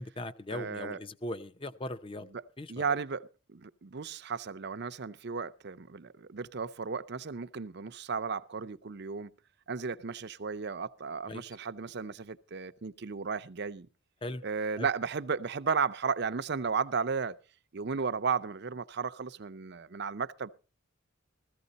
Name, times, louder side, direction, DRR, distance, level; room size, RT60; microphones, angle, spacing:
voice 1, 0.0-2.3 2.6-3.0 11.3-11.4 14.2-14.4 14.8-14.9, left 1 dB, 25° left, 0.6 m, -39 dB
voice 2, 0.5-1.0 2.3-2.4 2.7-9.3 9.7-13.9 14.4-17.4 17.7-20.5, right 5 dB, 55° right, 0.6 m, -34 dB
14.5 x 14.5 x 4.0 m
head